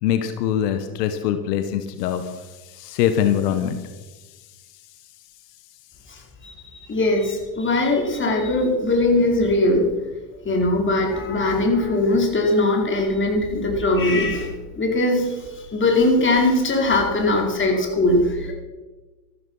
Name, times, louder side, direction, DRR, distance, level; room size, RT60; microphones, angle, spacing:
voice 1, 0.0-3.8, left 10 dB, 80° left, 9 dB, 1.4 m, -23 dB
voice 2, 6.9-9.9 10.4-15.4 15.7-18.5, left 2 dB, 25° left, 1 dB, 4.7 m, -20 dB
14.0 x 13.0 x 5.6 m, 1.2 s
supercardioid pair, 105°, 47 cm